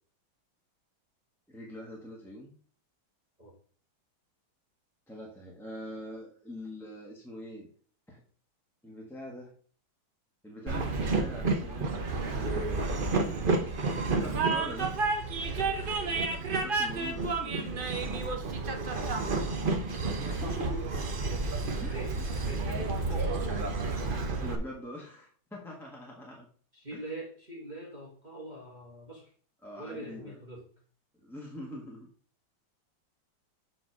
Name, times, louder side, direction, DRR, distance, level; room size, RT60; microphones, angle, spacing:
voice 1, 1.5-2.5 5.1-7.7 8.1-8.2 8.8-9.5 10.4-11.9 12.3-13.3 14.2-15.0 16.3-17.7 20.2-20.9 21.8-22.3 24.4-26.5 26.9-27.0 29.6-30.4 31.2-32.1, equal, ahead, -3 dB, 1.2 m, -43 dB
Train, 10.7-24.6, right 3 dB, 50° right, 0.6 m, -30 dB
voice 2, 16.0-16.3 18.1-18.3 18.7-19.4 21.7-22.1 22.4-23.6 26.7-29.3 29.8-30.6, right 1 dB, 25° right, -3 dB, 1.8 m, -44 dB
7.4 x 4.3 x 4.7 m, 0.43 s
omnidirectional pair, 2.1 m